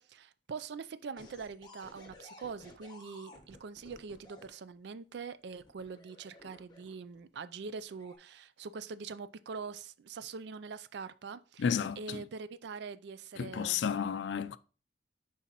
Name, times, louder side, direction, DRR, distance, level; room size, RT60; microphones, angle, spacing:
voice 1, 0.0-11.7 12.0-14.1, right 5 dB, 65° right, 0.4 m, -44 dB
sound 1, 1.2-4.5 5.5-7.2 7.8-8.2, left 1 dB, 25° left, 1.1 m, -55 dB
voice 2, 11.6-12.2 13.4-14.6, left 7 dB, 65° left, 0.3 m, -32 dB
6.9 x 4.8 x 2.9 m
head